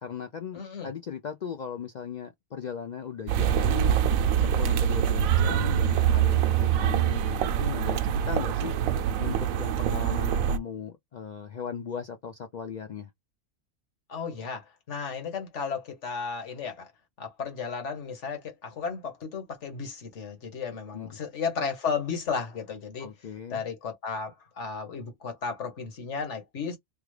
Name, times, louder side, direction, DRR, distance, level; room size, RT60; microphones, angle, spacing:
voice 1, 0.0-4.0 4.4-8.7 9.2-13.1 20.9-21.2 23.0-23.6, left 7 dB, 80° left, 0.4 m, -38 dB
voice 2, 0.5-0.9 14.1-16.9 17.2-23.1 23.5-26.8, left 5 dB, 60° left, 1.5 m, -34 dB
sound 1, 3.3-10.6, right 9 dB, 90° right, 1.0 m, -24 dB
3.6 x 2.3 x 3.1 m
omnidirectional pair, 1.4 m